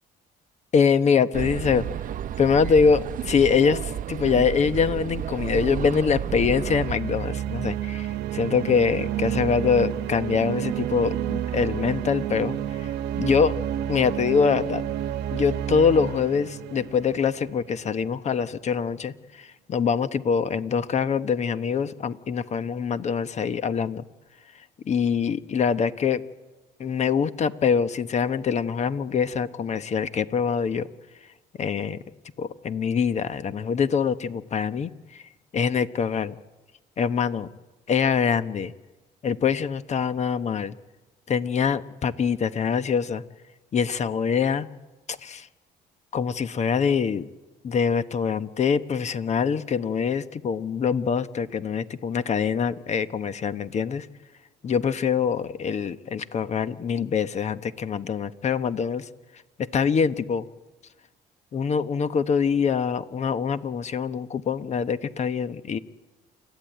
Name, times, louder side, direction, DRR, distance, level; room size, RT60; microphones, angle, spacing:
voice 1, 0.7-1.8 2.4-12.9 13.2-13.5 13.9-14.8 15.3-24.0 24.8-26.2 26.8-30.9 31.6-32.0 32.4-35.2 35.5-36.3 37.0-37.5 37.9-38.7 39.2-40.8 41.3-43.2 43.7-44.7 45.1-45.5 46.1-47.2 47.6-54.1 54.6-59.1 59.6-60.5 61.5-65.8, left 6 dB, 40° left, 12 dB, 1.1 m, -24 dB
sound 1, 1.3-6.9, right 10 dB, 55° right, 0.8 m, -31 dB
sound 2, 6.3-17.9, right 11 dB, 80° right, 1.1 m, -30 dB
28.5 x 14.0 x 9.2 m, 1.2 s
cardioid pair, 110°, 17 cm